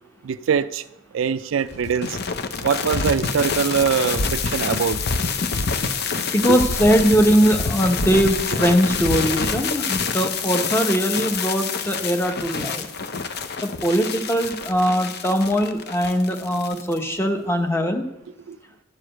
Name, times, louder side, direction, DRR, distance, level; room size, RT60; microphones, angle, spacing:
voice 1, 0.2-0.8 1.1-2.2 2.6-5.0 6.5-6.6 18.5-18.6, right 7 dB, 70° right, 14 dB, 0.4 m, -22 dB
sound 1, 1.7-17.0, left 5 dB, 50° left, 0.7 m, -26 dB
voice 2, 6.3-12.9 13.6-18.0, equal, 10° left, 5 dB, 0.9 m, -21 dB
12.0 x 4.9 x 7.7 m, 0.90 s
head